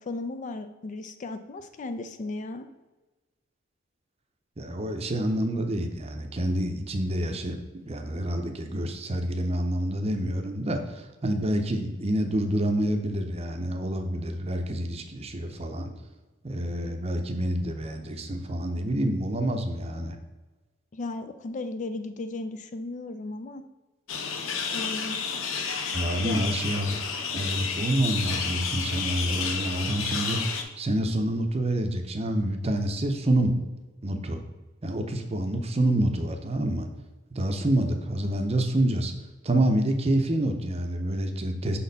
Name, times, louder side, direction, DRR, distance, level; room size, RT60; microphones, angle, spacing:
voice 1, 0.0-2.7 20.9-23.6 24.7-25.2 26.2-26.4, left 2 dB, 40° left, 9 dB, 0.4 m, -35 dB
voice 2, 4.6-15.9 16.4-20.1 25.9-27.0 27.3-33.6 34.0-34.4 34.8-36.9 37.3-39.1 39.4-41.8, right 1 dB, 30° right, 5 dB, 0.6 m, -27 dB
sound 1, 24.1-30.6, left 6 dB, 80° left, 0.7 m, -31 dB
5.8 x 4.2 x 4.0 m, 1.2 s
head